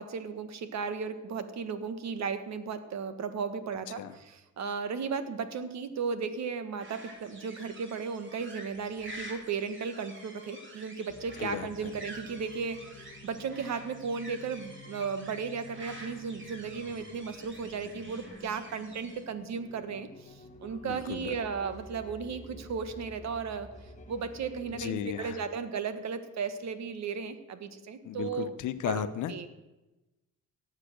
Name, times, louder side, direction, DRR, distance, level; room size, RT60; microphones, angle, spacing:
voice 1, 0.0-23.7 24.1-28.5 28.8-29.5, right 5 dB, 65° right, 11 dB, 1.5 m, -35 dB
sound 1, 6.8-19.2, right 1 dB, 40° right, 3.3 m, -48 dB
sound 2, 11.1-24.9, left 2 dB, 25° left, 1.5 m, -50 dB
voice 2, 11.4-11.9 20.8-21.3 24.8-25.4 28.0-29.5, left 10 dB, 80° left, 12 dB, 1.0 m, -35 dB
18.0 x 7.5 x 6.6 m, 1.0 s
cardioid pair, 90°, 30 cm